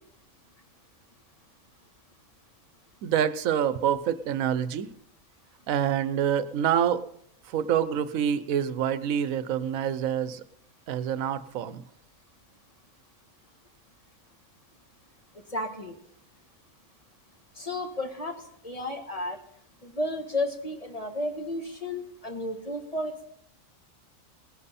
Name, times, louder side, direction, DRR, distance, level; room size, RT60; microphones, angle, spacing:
voice 1, 3.0-4.9 5.7-7.1 7.4-10.4 10.9-11.8, right 9 dB, 80° right, 14 dB, 1.1 m, -26 dB
voice 2, 15.5-15.9 17.5-19.4 19.8-23.3, left 1 dB, 30° left, 4 dB, 1.4 m, -33 dB
19.0 x 10.5 x 4.2 m, 0.73 s
omnidirectional pair, 1.4 m